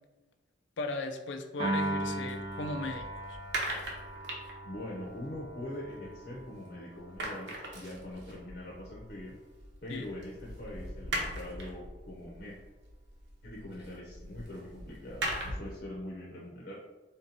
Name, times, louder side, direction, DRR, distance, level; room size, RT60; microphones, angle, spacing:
voice 1, 0.8-3.4 9.9-10.1, left 2 dB, 75° left, 6 dB, 0.5 m, -37 dB
Piano, 1.6-8.0, right 1 dB, 35° right, 0.8 m, -39 dB
sound 1, 2.0-6.7 6.9-15.8, right 1 dB, 70° right, 0.9 m, -41 dB
voice 2, 4.6-9.3 9.8-12.6 13.4-16.7, left 1 dB, 60° left, -4 dB, 0.8 m, -43 dB
3.7 x 2.9 x 3.9 m, 1.1 s
head